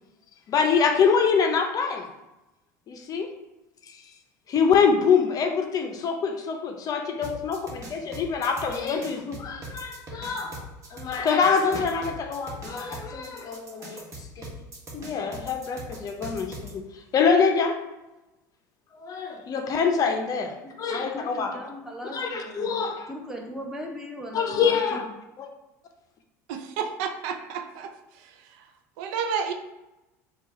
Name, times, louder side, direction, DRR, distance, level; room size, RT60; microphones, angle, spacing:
voice 1, 0.5-2.1 2.9-3.3 4.5-10.6 10.9-14.0 14.4-14.5 14.9-16.8 17.1-17.8 19.0-20.5 20.8-21.6 22.1-23.1 24.3-25.1 25.4-25.5, left 6 dB, 40° left, 0.6 m, -25 dB
sound 1, 7.2-16.7, right 1 dB, 35° right, 1.4 m, -40 dB
voice 2, 21.0-22.7 23.1-25.0, equal, 5° right, 1.0 m, -38 dB
voice 3, 26.5-27.9 29.0-29.5, right 6 dB, 70° right, 0.5 m, -30 dB
4.4 x 2.4 x 4.2 m
supercardioid pair, 90°, 9 cm